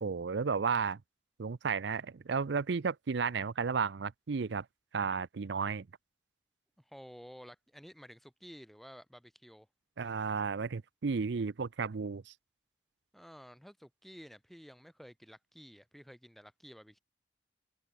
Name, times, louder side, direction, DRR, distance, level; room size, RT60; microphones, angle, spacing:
voice 1, 0.0-1.0 1.4-4.7 4.9-5.9 10.0-12.3, right 5 dB, 75° right, 0.5 m, -33 dB
voice 2, 6.8-9.7 13.1-17.0, equal, ahead, 1.5 m, -53 dB
head